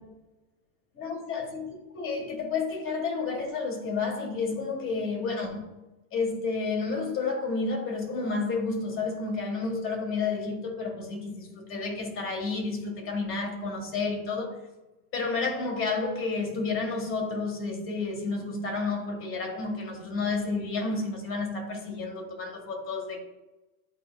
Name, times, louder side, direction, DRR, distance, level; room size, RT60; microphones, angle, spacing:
voice 1, 0.9-5.7 6.1-14.6 15.1-23.2, left 4 dB, 30° left, 1.5 m, -31 dB
11.0 x 4.4 x 2.3 m
supercardioid pair, 125°, 41 cm